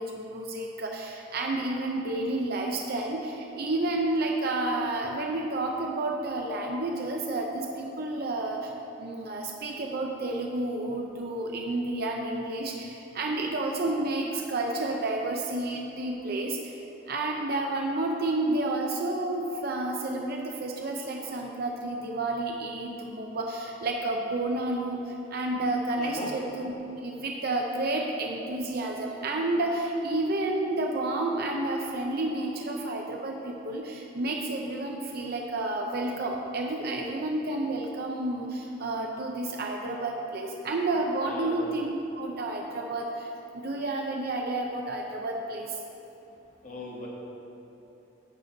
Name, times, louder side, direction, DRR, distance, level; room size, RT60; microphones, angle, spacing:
voice 1, 0.0-8.7 9.0-16.8 17.1-26.7 27.0-45.8, right 2 dB, 50° right, 0 dB, 0.6 m, -30 dB
voice 2, 26.0-26.3 41.2-41.6 46.6-47.1, left 2 dB, 40° left, -3 dB, 1.5 m, -38 dB
10.5 x 6.7 x 3.9 m, 3.0 s
head